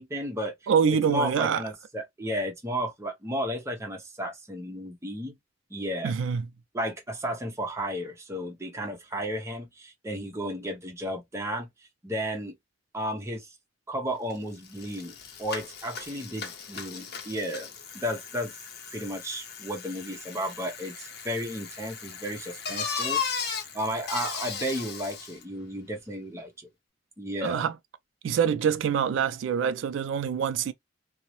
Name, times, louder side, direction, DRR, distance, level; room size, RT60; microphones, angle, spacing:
voice 1, 0.0-0.5 1.1-5.3 5.7-6.2 6.7-11.7 12.0-12.5 12.9-13.5 13.9-17.7 17.9-18.5 18.9-23.2 23.7-26.7 27.2-27.7, equal, 15° right, 0.6 m, -33 dB
voice 2, 0.7-1.6 6.0-6.5 27.4-27.8 28.2-30.7, right 7 dB, 80° right, 0.3 m, -25 dB
Bicycle, 14.3-14.4 14.6-25.4, left 6 dB, 60° left, 0.7 m, -37 dB
2.6 x 2.0 x 3.0 m
head